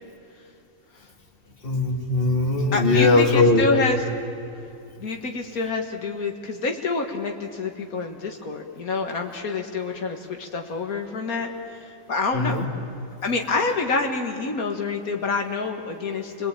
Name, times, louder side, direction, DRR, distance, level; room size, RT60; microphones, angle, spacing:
voice 1, 1.6-3.7 12.3-12.6, left 3 dB, 40° left, 2 dB, 2.7 m, -20 dB
voice 2, 2.7-4.0 5.0-12.6 13.2-16.5, left 4 dB, 85° left, 3 dB, 2.1 m, -27 dB
29.5 x 21.0 x 9.0 m, 2.7 s
omnidirectional pair, 1.5 m